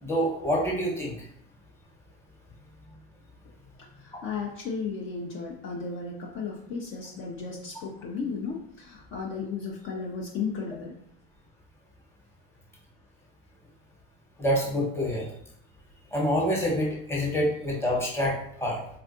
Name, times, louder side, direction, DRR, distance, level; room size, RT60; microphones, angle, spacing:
voice 1, 0.0-1.1 14.4-15.3 16.1-18.8, equal, 10° left, -3 dB, 1.1 m, -26 dB
voice 2, 4.0-10.9, left 5 dB, 40° left, -1 dB, 0.6 m, -34 dB
4.3 x 2.4 x 2.6 m, 0.70 s
supercardioid pair, 105°, 30 cm